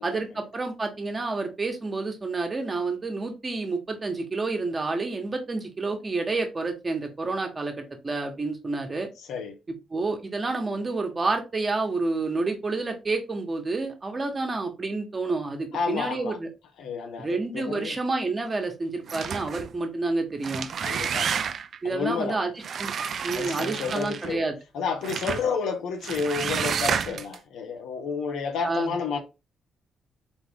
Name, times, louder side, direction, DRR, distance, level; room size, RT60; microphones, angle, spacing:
voice 1, 0.0-9.1 9.9-16.5 17.2-20.7 21.8-22.5 22.8-22.9 23.2-24.5 27.0-27.2 28.6-29.0, right 3 dB, 30° right, 1.4 m, -29 dB
voice 2, 15.7-16.4 16.8-18.0 20.8-21.4 21.8-22.4 23.3-24.5 24.7-29.2, left 5 dB, 85° left, 1.0 m, -30 dB
Roller Shade various, 19.1-19.7 20.3-21.8 22.6-24.4 25.0-25.5 26.0-27.4, right 7 dB, 60° right, 0.5 m, -30 dB
4.1 x 3.5 x 3.6 m
cardioid pair, 85°, 0 cm